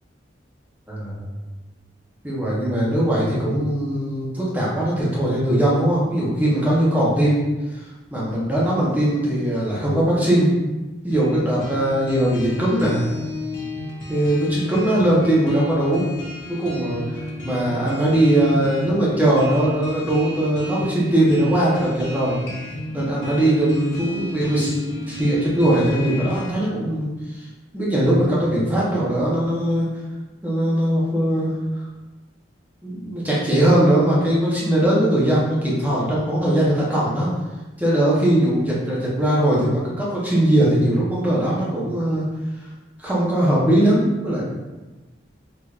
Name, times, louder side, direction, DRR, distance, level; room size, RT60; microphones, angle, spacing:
voice 1, 2.2-7.4 7.7-10.5 11.0-13.0 14.1-16.1 16.5-22.4 22.9-24.7 25.1-27.5 27.7-29.9 30.4-31.5 32.8-37.3 37.8-42.2 43.0-44.5, right 1 dB, 10° right, -7 dB, 0.7 m, -20 dB
sound 1, 11.1-26.5, left 2 dB, 80° left, 0.7 m, -33 dB
3.3 x 2.8 x 2.4 m, 1.1 s
head